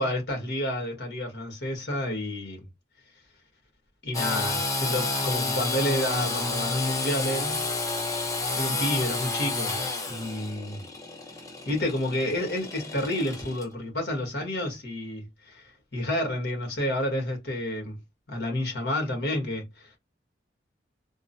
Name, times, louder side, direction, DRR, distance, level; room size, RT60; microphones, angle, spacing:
voice 1, 0.0-2.7 4.0-7.6 8.6-9.8 10.1-10.8 11.6-18.0 18.3-20.0, left 1 dB, 60° left, 1.6 m, -30 dB
Engine / Sawing, 4.1-13.6, left 3 dB, 15° left, 0.7 m, -30 dB
3.6 x 2.2 x 2.6 m
head